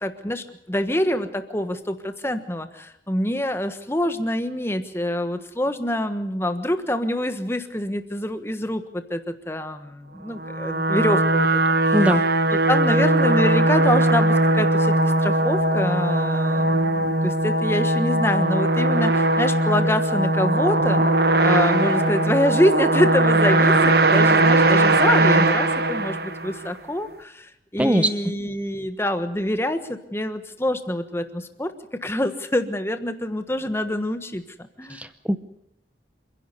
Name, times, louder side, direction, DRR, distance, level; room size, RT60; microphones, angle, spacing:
voice 1, 0.0-11.5 11.8-12.2 12.5-14.9 15.2-21.1 21.4-34.4 34.8-35.0, left 1 dB, 15° left, 9 dB, 1.3 m, -26 dB
sound 1, 10.4-26.7, right 2 dB, 55° right, 1.3 m, -19 dB
voice 2, 27.8-28.1 35.0-35.4, equal, 5° right, 10 dB, 0.8 m, -20 dB
27.5 x 11.0 x 9.8 m, 0.81 s
head